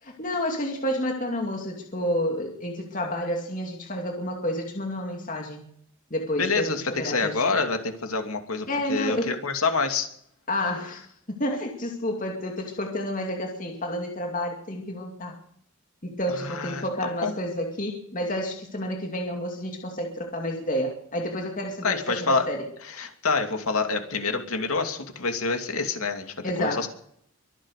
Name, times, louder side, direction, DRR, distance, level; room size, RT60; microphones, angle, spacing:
voice 1, 0.0-5.6 6.1-7.4 8.7-9.4 10.5-15.3 16.0-22.7 26.4-26.9, left 1 dB, 35° left, 2 dB, 2.5 m, -30 dB
voice 2, 6.4-10.1 16.4-16.8 17.2-17.3 21.8-22.5 23.0-26.9, left 4 dB, 80° left, 6 dB, 2.7 m, -27 dB
23.5 x 9.2 x 6.7 m, 0.68 s
head